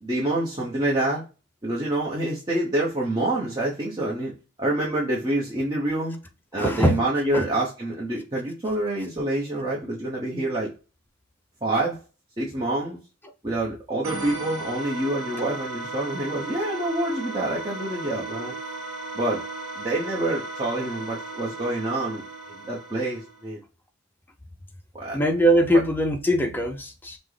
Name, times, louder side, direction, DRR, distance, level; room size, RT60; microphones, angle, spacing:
voice 1, 0.0-1.2 1.6-4.3 4.6-6.2 6.5-10.7 11.6-12.0 12.4-13.0 13.4-18.5 19.1-19.4 19.7-23.6 24.9-25.2 25.7-25.8, right 1 dB, 20° right, 0.8 m, -27 dB
voice 2, 6.6-7.0 7.3-7.5 25.1-27.2, equal, 10° left, 0.5 m, -21 dB
sound 1, 14.0-23.5, right 2 dB, 75° right, 0.8 m, -36 dB
5.8 x 2.1 x 3.2 m
head